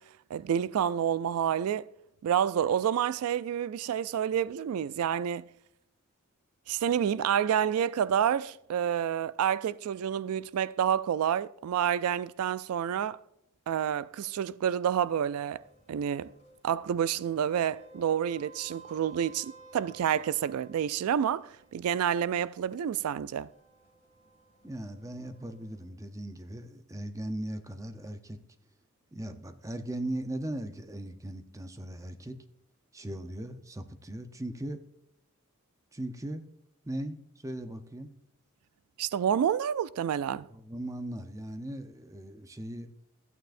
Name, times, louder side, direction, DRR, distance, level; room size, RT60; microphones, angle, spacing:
voice 1, 0.3-1.9 2.2-5.4 6.7-13.2 13.7-15.6 15.9-16.3 16.6-23.5 39.0-40.5, right 9 dB, 80° right, 0.3 m, -29 dB
sound 1, 14.8-25.9, right 3 dB, 30° left, 2.1 m, -56 dB
voice 2, 24.6-28.4 29.1-32.4 32.9-34.8 35.9-36.4 36.8-38.1 40.5-42.9, right 1 dB, 15° right, 0.6 m, -38 dB
13.5 x 9.0 x 2.5 m
head